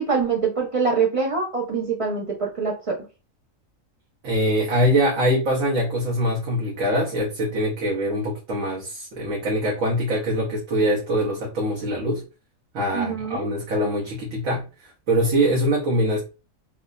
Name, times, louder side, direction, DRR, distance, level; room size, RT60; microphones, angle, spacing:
voice 1, 0.0-3.0 12.9-13.5, right 5 dB, 55° right, 0.3 m, -24 dB
voice 2, 4.2-12.2 12.7-16.2, equal, 75° right, 1.1 m, -23 dB
3.3 x 2.0 x 2.2 m
omnidirectional pair, 1.4 m